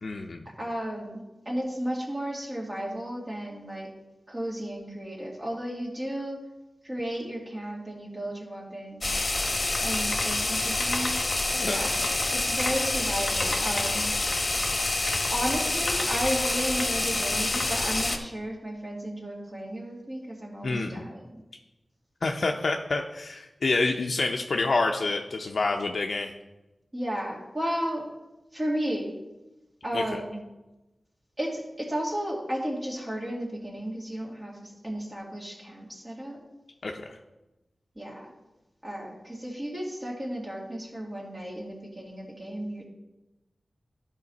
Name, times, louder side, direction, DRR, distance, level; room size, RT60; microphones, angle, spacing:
voice 1, 0.0-0.4 11.5-11.8 20.6-21.0 22.2-26.3 29.9-30.2 36.8-37.2, left 3 dB, 65° left, 2 dB, 0.5 m, -28 dB
voice 2, 0.6-3.9 4.3-6.4 6.8-9.1 9.8-11.2 11.6-14.1 15.3-21.4 26.9-28.1 28.5-29.1 29.8-30.4 31.4-36.4 38.0-38.3 38.8-42.9, equal, 30° right, -4 dB, 2.0 m, -33 dB
sound 1, 9.0-18.2, left 2 dB, 40° left, 0.9 m, -27 dB
12.5 x 5.1 x 4.0 m, 1.0 s
wide cardioid pair, 95°, 0 cm